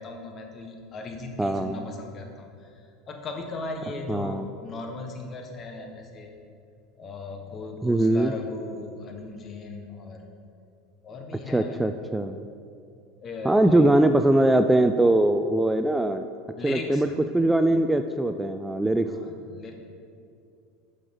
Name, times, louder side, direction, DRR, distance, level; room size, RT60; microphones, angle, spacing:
voice 1, 0.0-2.7 3.1-6.4 7.0-10.3 11.0-11.8 13.2-13.9 16.6-17.2 19.1-19.7, left 3 dB, 35° left, 3 dB, 1.5 m, -38 dB
voice 2, 1.4-1.9 4.1-4.4 7.8-8.3 11.5-12.4 13.4-16.3 16.6-17.1 17.3-19.1, right 1 dB, 10° right, 8 dB, 0.4 m, -21 dB
12.0 x 6.7 x 3.9 m, 2.4 s
supercardioid pair, 110°, 0 cm